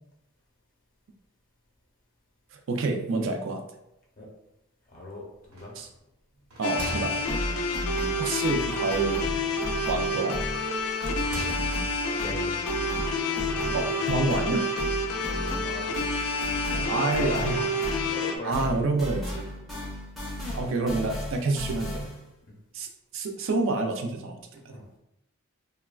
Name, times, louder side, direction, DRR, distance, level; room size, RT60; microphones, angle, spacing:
voice 1, 2.5-3.6 5.8-5.9 6.6-7.2 8.2-9.3 9.9-10.4 13.7-14.6 16.9-17.9 18.4-19.5 20.5-22.1 22.7-22.9 23.1-24.8, right 3 dB, 60° right, 4 dB, 0.3 m, -28 dB
voice 2, 4.9-5.7 11.2-11.8 12.2-12.6 13.4-14.1 15.1-16.0 16.7-17.5 18.1-18.9 22.5-22.6 24.7-25.0, left 1 dB, 35° left, -2 dB, 0.7 m, -41 dB
sound 1, 5.5-6.0 6.3-7.9 9.2-10.1 10.7-12.0, equal, 80° right, 0.9 m, -40 dB
sound 2, 6.6-18.4, left 2 dB, 85° left, 0.4 m, -29 dB
sound 3, 7.3-10.7 11.0-18.3 18.5-22.3, equal, ahead, 0.5 m, -35 dB
3.0 x 2.2 x 2.2 m, 0.86 s
head